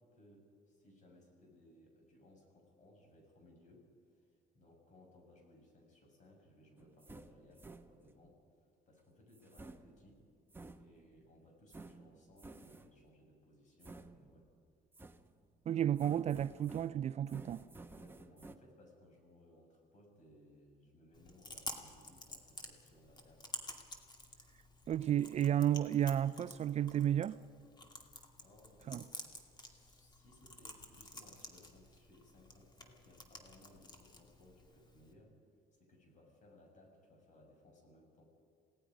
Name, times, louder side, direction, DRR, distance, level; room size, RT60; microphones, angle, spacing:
voice 1, 0.0-8.4 8.9-10.2 10.8-14.5 17.9-23.5 28.4-29.1 29.7-35.4 35.7-38.2, left 1 dB, 45° left, 6.8 m, -63 dB
sound 1, 6.8-8.3 9.3-11.2 11.7-13.1 13.8-14.6 14.9-15.6 16.0-18.6, right 3 dB, 15° right, 0.9 m, -54 dB
voice 2, 15.7-17.6 24.9-27.4 28.9-29.0, right 10 dB, 40° right, 0.4 m, -32 dB
Chewing mastication, 21.1-35.1, left 2 dB, 25° left, 2.4 m, -51 dB
28.0 x 18.0 x 5.2 m
cardioid pair, 110°, 17 cm